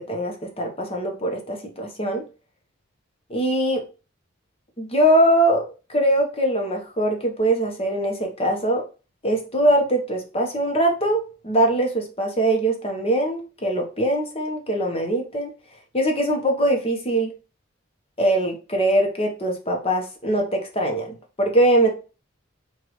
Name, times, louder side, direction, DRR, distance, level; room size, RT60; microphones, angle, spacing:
voice 1, 0.0-2.2 3.3-3.8 4.8-8.9 9.2-15.5 15.9-17.3 18.2-21.9, right 1 dB, 30° left, 2 dB, 1.0 m, -22 dB
5.1 x 2.7 x 3.1 m, 0.33 s
head